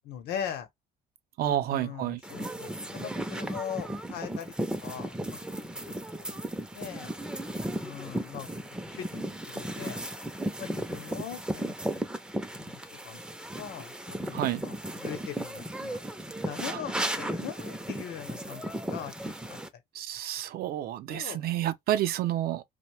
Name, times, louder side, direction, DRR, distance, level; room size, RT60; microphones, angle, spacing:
voice 1, 0.0-0.7 1.4-4.5 4.8-5.4 6.2-6.4 6.7-7.1 7.8-8.5 8.9-10.0 10.6-12.0 12.5-12.8 13.0-13.2 13.6-16.0 16.5-19.1 19.5-19.6 21.1-21.4, left 9 dB, 75° left, 0.9 m, -40 dB
voice 2, 1.4-2.2 14.3-14.7 16.7-16.8 20.0-22.6, right 12 dB, 65° right, 0.5 m, -29 dB
sound 1, 2.2-19.7, right 1 dB, 5° right, 0.5 m, -35 dB
2.7 x 2.1 x 3.1 m
cardioid pair, 110°, 17 cm